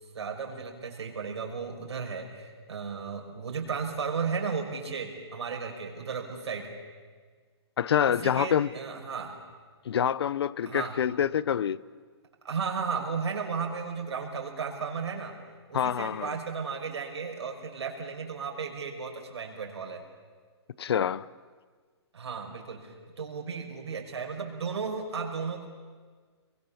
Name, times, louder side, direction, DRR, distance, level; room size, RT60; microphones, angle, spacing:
voice 1, 0.1-6.7 8.1-9.4 10.6-11.0 12.4-15.4 15.7-20.0 22.1-25.7, right 5 dB, 70° right, 5.9 m, -34 dB
voice 2, 7.8-8.7 9.9-11.8 15.7-16.3 20.8-21.2, left 9 dB, 65° left, 0.7 m, -26 dB
29.5 x 22.5 x 7.2 m
hypercardioid pair, 165°, 14 cm